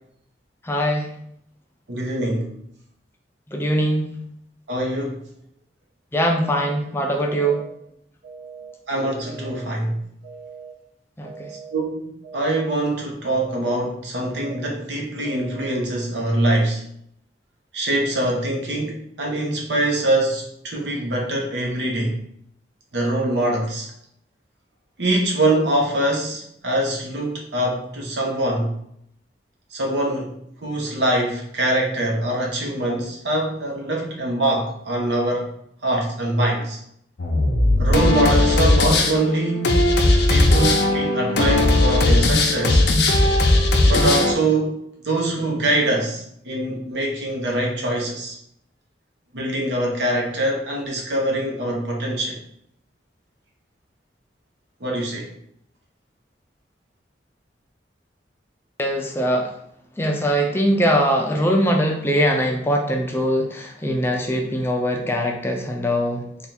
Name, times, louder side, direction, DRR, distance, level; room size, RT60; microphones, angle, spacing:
voice 1, 0.6-1.1 3.5-4.1 6.1-7.6 11.2-11.5 58.8-59.5 60.0-66.2, equal, 15° left, 2 dB, 0.4 m, -21 dB
voice 2, 1.9-2.5 4.7-5.2 8.9-10.0 11.7-12.1 12.3-16.8 17.7-22.2 22.9-23.9 25.0-28.8 29.7-30.3 30.6-35.5 35.8-36.8 37.8-39.8 40.3-42.8 43.8-44.8 45.0-48.4 49.3-52.4 54.8-55.3, right 1 dB, 80° right, 0 dB, 0.9 m, -23 dB
sound 1, 6.2-6.7 7.2-7.7 8.2-8.7 9.2-9.7 10.2-10.7 11.2-11.7 12.2-12.7 13.2-13.7 14.2-14.7 15.2-15.7, right 5 dB, 40° right, 1.3 m, -40 dB
sound 2, 37.2-44.3, left 2 dB, 70° left, 0.6 m, -17 dB
3.4 x 2.4 x 4.2 m, 0.71 s
head